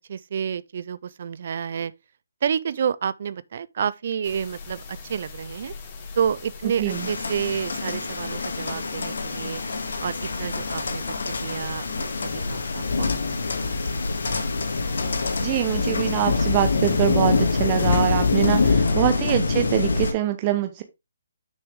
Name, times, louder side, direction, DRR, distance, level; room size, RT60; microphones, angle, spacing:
voice 1, 0.1-1.9 2.4-5.7 6.1-9.6 10.0-13.2 13.6-13.8, right 7 dB, 50° right, 0.4 m, -29 dB
sound 1, 4.2-18.7, left 4 dB, 30° left, 2.2 m, -41 dB
sound 2, 6.9-20.1, left 4 dB, 70° left, 1.9 m, -25 dB
voice 2, 15.4-20.8, right 13 dB, 25° right, 0.9 m, -24 dB
6.8 x 6.3 x 3.5 m
hypercardioid pair, 155°, 0 cm